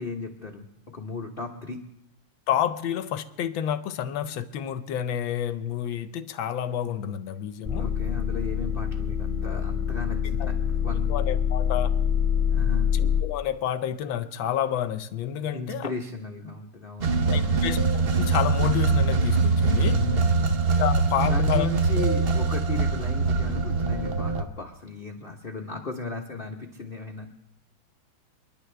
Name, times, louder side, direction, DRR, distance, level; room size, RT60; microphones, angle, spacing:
voice 1, 0.0-1.8 7.8-11.1 12.5-12.9 15.5-17.6 19.7-20.6 21.2-27.3, left 3 dB, 35° left, 1 dB, 0.9 m, -36 dB
voice 2, 2.5-7.9 10.4-10.5 11.1-11.9 12.9-15.9 17.3-20.0 20.8-21.7, left 10 dB, 75° left, 12 dB, 1.4 m, -29 dB
sound 1, 7.7-13.2, left 8 dB, 10° right, 0.7 m, -25 dB
sound 2, 17.0-24.4, right 4 dB, 60° right, 0.6 m, -23 dB
30.0 x 10.5 x 3.4 m, 0.83 s
omnidirectional pair, 2.3 m